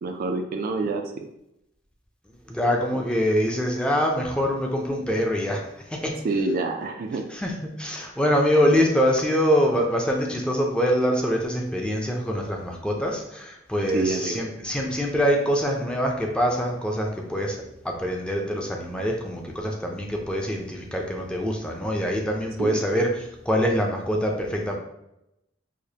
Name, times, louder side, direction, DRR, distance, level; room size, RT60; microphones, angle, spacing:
voice 1, 0.0-1.3 6.2-7.3 13.9-14.5 22.6-22.8, right 3 dB, 50° right, 5 dB, 0.3 m, -27 dB
voice 2, 2.5-5.6 5.9-6.2 7.3-17.6 17.8-23.1 23.5-24.8, equal, 5° left, 0 dB, 0.5 m, -24 dB
4.8 x 2.1 x 2.7 m, 0.85 s
head